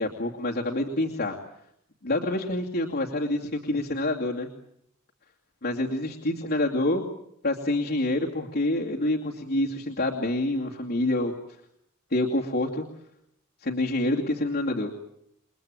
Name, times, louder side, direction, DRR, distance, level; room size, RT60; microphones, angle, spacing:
voice 1, 0.0-1.4 2.0-4.5 5.6-7.0 7.4-11.3 12.1-12.9 13.6-14.9, left 1 dB, 50° left, -1 dB, 2.6 m, -27 dB
29.5 x 21.5 x 9.0 m, 0.75 s
head